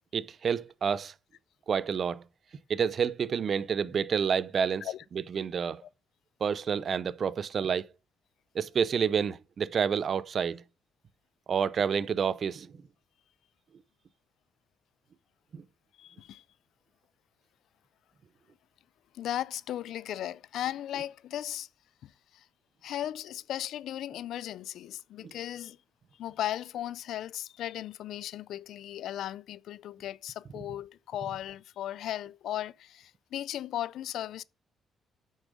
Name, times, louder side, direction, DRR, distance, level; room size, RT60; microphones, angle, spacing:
voice 1, 0.1-1.1 1.7-2.2 2.7-5.8 6.4-7.9 8.5-10.6 11.5-12.7 15.5-15.6 25.2-25.3, right 7 dB, 50° right, 0.6 m, -29 dB
voice 2, 16.0-16.4 19.1-21.7 22.0-22.4 22.8-25.8 26.2-34.4, left 12 dB, 80° left, 0.4 m, -36 dB
8.6 x 6.4 x 5.0 m
cardioid pair, 90°, 0 cm